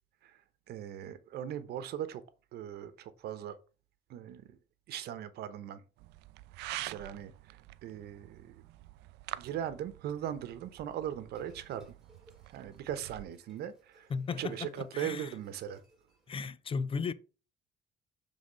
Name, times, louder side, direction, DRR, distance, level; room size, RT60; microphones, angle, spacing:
voice 1, 0.7-2.2 2.5-3.6 4.1-4.6 4.9-5.8 6.8-8.6 9.4-11.9 12.5-14.1 14.4-15.8, right 10 dB, 70° right, 0.9 m, -39 dB
sound 1, 6.0-13.2, right 17 dB, 85° right, 0.4 m, -47 dB
sound 2, 11.3-16.5, right 1 dB, ahead, 2.4 m, -65 dB
voice 2, 14.1-15.3 16.3-17.1, left 5 dB, 35° left, 0.5 m, -35 dB
7.4 x 3.7 x 5.1 m
cardioid pair, 110°, 17 cm